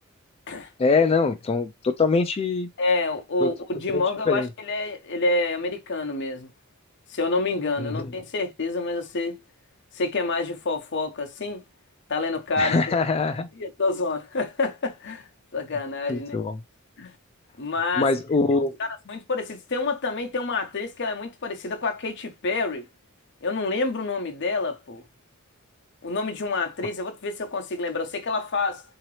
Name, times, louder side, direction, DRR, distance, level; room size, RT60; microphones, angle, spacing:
voice 1, 0.8-2.7 3.4-3.5 3.9-4.5 7.8-8.1 12.6-13.5 16.1-16.6 18.0-18.8, left 4 dB, 30° left, 0.3 m, -23 dB
voice 2, 2.8-6.5 7.1-9.4 9.9-11.6 12.1-13.0 13.6-16.4 17.0-17.1 17.6-18.1 18.5-22.8 23.4-25.0 26.0-28.8, left 3 dB, 55° left, 0.8 m, -28 dB
3.8 x 2.9 x 3.1 m
head